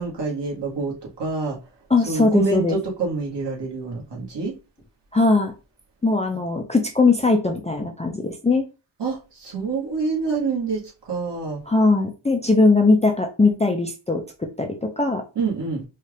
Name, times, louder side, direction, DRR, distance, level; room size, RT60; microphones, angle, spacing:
voice 1, 0.0-1.6 2.1-4.5 9.0-11.6 15.4-15.9, right 4 dB, 60° right, 1.8 m, -27 dB
voice 2, 1.9-2.8 5.1-5.5 6.0-8.7 11.7-15.2, left 3 dB, 15° left, 0.5 m, -20 dB
4.3 x 2.4 x 3.3 m
wide cardioid pair, 105°, 47 cm